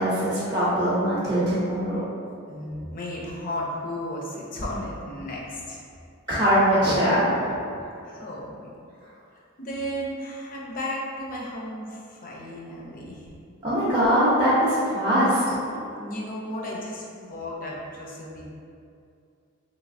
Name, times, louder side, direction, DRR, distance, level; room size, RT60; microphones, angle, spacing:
voice 1, 0.0-2.0 6.3-7.4 13.6-15.4, equal, 20° right, -13 dB, 0.6 m, -22 dB
voice 2, 2.5-5.8 8.0-8.7 9.6-13.3 15.7-18.4, left 1 dB, 40° left, -3 dB, 0.5 m, -34 dB
3.1 x 2.9 x 2.5 m, 2.5 s
head